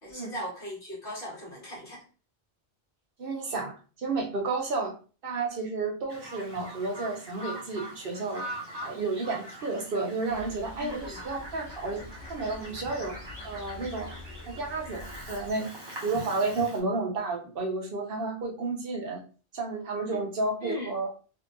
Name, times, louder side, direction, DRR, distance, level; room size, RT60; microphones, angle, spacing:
voice 1, 0.0-2.0 10.8-11.2 20.6-20.9, left 1 dB, 60° left, -4 dB, 1.8 m, -38 dB
voice 2, 3.2-5.0 5.2-8.4 8.8-12.0 12.3-13.2 13.4-14.1 14.5-15.7 16.0-19.2 19.5-21.1, right 3 dB, 65° right, 0 dB, 0.9 m, -31 dB
Bird vocalization bird call bird song, 6.1-16.8, right 1 dB, 25° right, 1.0 m, -43 dB
sound 1, 10.3-15.5, left 2 dB, 85° left, 0.9 m, -46 dB
3.6 x 2.7 x 2.5 m, 0.37 s
omnidirectional pair, 1.1 m